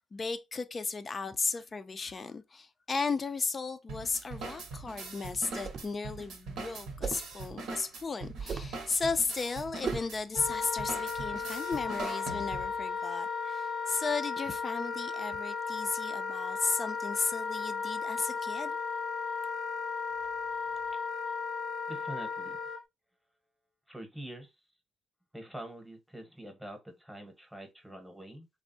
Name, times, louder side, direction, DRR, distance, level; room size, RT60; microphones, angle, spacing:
voice 1, 0.1-18.8, left 4 dB, 35° left, 0.4 m, -35 dB
sound 1, 3.9-12.8, right 3 dB, 80° right, 0.8 m, -42 dB
sound 2, 5.5-6.0 7.0-7.3 8.4-8.8 9.8-10.2, right 5 dB, 50° right, 0.5 m, -37 dB
Wind instrument woodwind instrument, 10.3-22.8, left 5 dB, 70° left, 0.7 m, -35 dB
voice 2, 21.9-22.6 23.9-24.7 25.3-28.5, right 1 dB, ahead, 0.9 m, -45 dB
3.4 x 2.0 x 2.5 m
cardioid pair, 90°, 0 cm